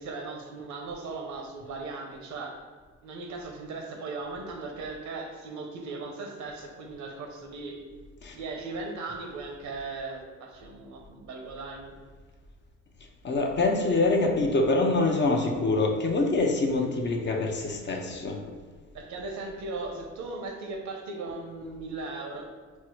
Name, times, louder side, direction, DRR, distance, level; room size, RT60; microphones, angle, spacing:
voice 1, 0.0-2.6 3.0-7.8 8.3-11.9 18.9-22.5, right 3 dB, 70° right, 2 dB, 0.8 m, -38 dB
voice 2, 13.2-18.4, left 2 dB, 35° left, 2 dB, 0.6 m, -25 dB
4.4 x 2.0 x 4.4 m, 1.5 s
cardioid pair, 90°, 30 cm